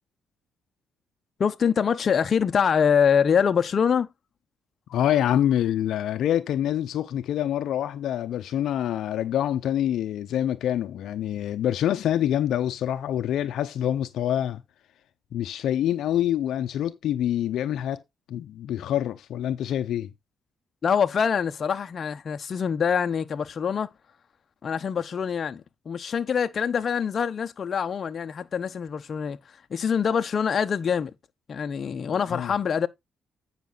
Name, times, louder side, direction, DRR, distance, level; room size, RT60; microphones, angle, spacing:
voice 1, 1.4-4.1 20.8-23.9 24.6-29.4 29.7-31.1 31.5-32.9, left 7 dB, 50° left, 1.0 m, -24 dB
voice 2, 4.9-14.6 15.3-18.0 18.3-20.1 32.3-32.5, left 11 dB, 75° left, 0.8 m, -26 dB
9.3 x 6.1 x 4.1 m
cardioid pair, 90°, 0 cm